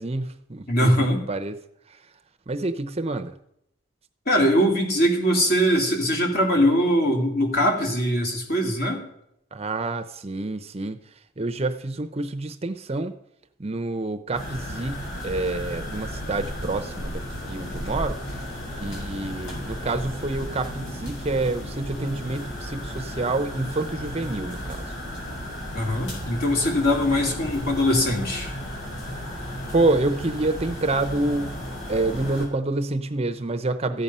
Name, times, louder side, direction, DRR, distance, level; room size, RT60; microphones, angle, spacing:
voice 1, 0.0-1.6 2.5-3.3 9.5-11.0 11.4-13.1 13.6-17.2 17.5-18.2 18.8-24.8 29.7-31.6 31.9-34.0, right 2 dB, 30° right, 9 dB, 0.7 m, -27 dB
voice 2, 0.7-1.2 4.3-9.0 25.7-28.5, equal, 55° left, 1 dB, 2.8 m, -21 dB
sound 1, 14.3-32.5, equal, 80° left, 5.2 m, -34 dB
14.5 x 8.7 x 5.5 m, 0.77 s
head